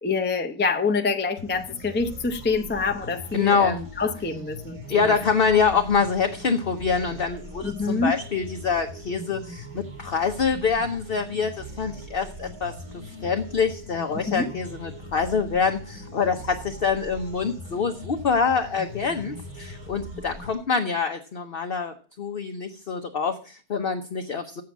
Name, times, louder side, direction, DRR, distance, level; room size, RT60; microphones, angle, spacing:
voice 1, 0.0-5.1 7.6-8.2 14.1-14.5, left 4 dB, 10° left, 0.4 m, -26 dB
sound 1, 1.4-20.5, equal, 60° right, 3.7 m, -40 dB
voice 2, 3.3-3.8 4.9-12.7 13.2-24.6, left 5 dB, 45° left, 0.9 m, -25 dB
7.7 x 7.7 x 7.2 m
omnidirectional pair, 1.8 m